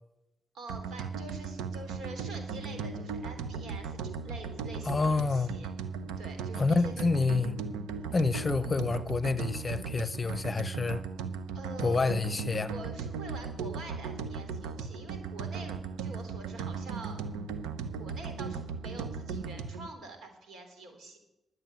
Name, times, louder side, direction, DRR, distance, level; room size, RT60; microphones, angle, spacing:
voice 1, 0.5-5.7 6.2-7.1 8.0-8.2 11.5-12.2 12.7-17.2 18.0-21.2, right 2 dB, 75° right, 3.1 m, -46 dB
sound 1, 0.7-19.9, right 5 dB, 90° right, 0.8 m, -37 dB
voice 2, 4.8-5.6 6.5-7.6 8.1-11.0 11.8-12.7, left 3 dB, 35° left, 0.7 m, -28 dB
11.0 x 8.0 x 9.4 m
supercardioid pair, 50°, 0 cm